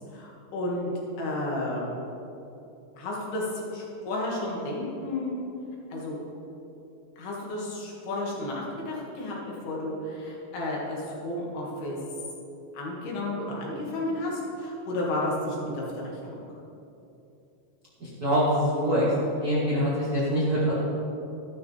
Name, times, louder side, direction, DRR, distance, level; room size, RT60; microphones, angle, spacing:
voice 1, 0.1-0.9 1.2-1.9 3.0-5.4 5.9-6.2 7.2-12.0 12.7-16.2, left 1 dB, 70° left, -4 dB, 4.1 m, -32 dB
voice 2, 18.0-19.1 19.4-20.7, equal, 35° right, -9 dB, 1.6 m, -24 dB
14.0 x 12.0 x 3.5 m, 2.8 s
omnidirectional pair, 4.8 m